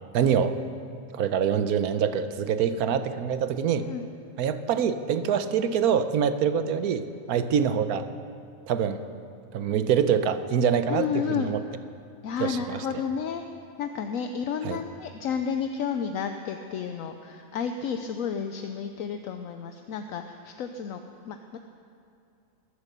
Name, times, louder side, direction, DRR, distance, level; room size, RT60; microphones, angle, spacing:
voice 1, 0.1-0.6 1.1-3.9 4.4-8.1 8.7-9.0 9.5-11.6 12.4-12.8 14.6-14.8, right 7 dB, 85° right, 11 dB, 1.2 m, -25 dB
voice 2, 10.9-11.5 12.2-13.4 13.8-21.6, left 7 dB, 70° left, 6 dB, 1.0 m, -31 dB
21.5 x 8.1 x 6.7 m, 2.6 s
omnidirectional pair, 1.5 m